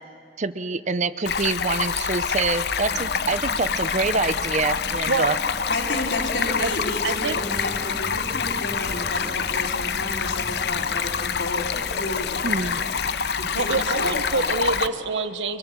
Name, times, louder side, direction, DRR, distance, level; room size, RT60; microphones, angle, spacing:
voice 1, 0.4-5.3 12.4-12.8, right 3 dB, 35° right, 13 dB, 0.6 m, -26 dB
Stream, 1.3-14.9, left 6 dB, 55° left, 0.6 m, -26 dB
sound 1, 2.9-14.2, equal, ahead, 0.8 m, -41 dB
voice 2, 5.7-12.9 13.4-14.5, left 2 dB, 75° left, 0 dB, 4.0 m, -31 dB
voice 3, 7.0-7.4 13.5-15.6, right 4 dB, 75° right, 11 dB, 1.2 m, -26 dB
29.0 x 27.5 x 7.5 m, 2.5 s
head